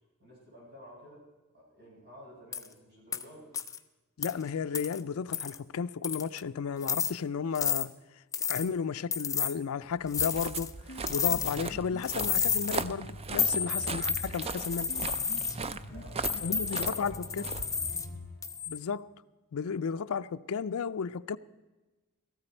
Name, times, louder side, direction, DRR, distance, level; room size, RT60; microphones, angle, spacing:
voice 1, 0.2-1.2 1.5-3.5 13.4-13.7 15.9-17.5, equal, 50° right, 6.0 m, -51 dB
sound 1, 2.5-2.7 3.1-3.2 3.5-3.8 4.2-4.3 4.7-5.0 5.3-5.6 6.0-6.4 6.8-7.1 7.5-7.8 8.3-8.7 9.1-9.5 10.1-10.7 11.1-11.7 12.0-12.8 13.4-15.5 16.2-18.1 18.4-18.8, left 6 dB, 15° left, 0.6 m, -31 dB
voice 2, 4.2-7.9 8.5-10.7 11.1-14.9 16.4-17.4 18.7-19.1 19.5-21.4, left 6 dB, 70° left, 0.4 m, -33 dB
Walk footsteps, 10.0-18.3, right 4 dB, 25° right, 0.4 m, -39 dB
Piano, 10.7-18.7, left 1 dB, 50° left, 3.7 m, -45 dB
17.0 x 14.5 x 4.4 m
head